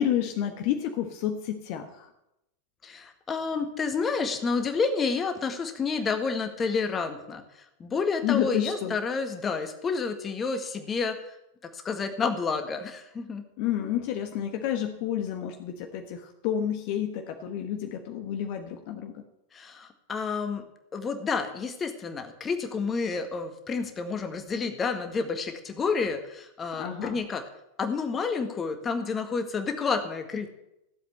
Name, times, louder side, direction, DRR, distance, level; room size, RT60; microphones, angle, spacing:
voice 1, 0.0-2.1 8.2-9.0 13.6-19.2 26.8-27.2, left 10 dB, 45° left, 5 dB, 1.3 m, -30 dB
voice 2, 2.8-7.4 7.8-11.2 11.7-13.4 19.5-20.6 20.9-27.4 27.8-30.5, left 5 dB, 20° left, 6 dB, 1.8 m, -29 dB
15.0 x 7.9 x 8.0 m, 0.86 s
figure-of-eight pair, 90°, 0 cm